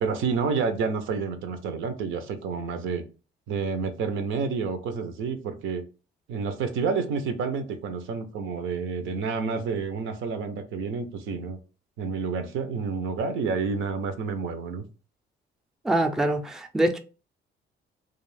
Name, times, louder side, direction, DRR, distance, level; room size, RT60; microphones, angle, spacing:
voice 1, 0.0-3.0 3.5-5.8 6.3-11.6 12.0-14.8, right 5 dB, 80° right, 0.6 m, -29 dB
voice 2, 15.8-17.0, right 1 dB, ahead, 0.4 m, -24 dB
2.4 x 2.4 x 3.2 m
cardioid pair, 90°, 20 cm